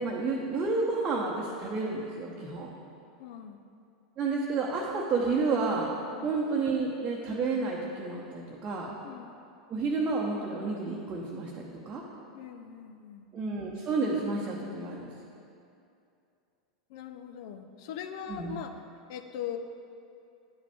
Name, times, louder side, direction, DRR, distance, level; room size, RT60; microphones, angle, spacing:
voice 1, 0.0-2.7 4.2-5.9 6.2-8.9 9.7-12.0 13.3-15.1 18.3-18.5, right 3 dB, 30° right, -3 dB, 0.8 m, -30 dB
voice 2, 3.2-3.6 6.1-6.3 9.0-9.4 12.3-13.3 16.9-18.8 19.1-19.6, left 9 dB, 55° left, 7 dB, 0.5 m, -41 dB
10.0 x 4.8 x 3.5 m, 2.6 s
figure-of-eight pair, 85°, 3 cm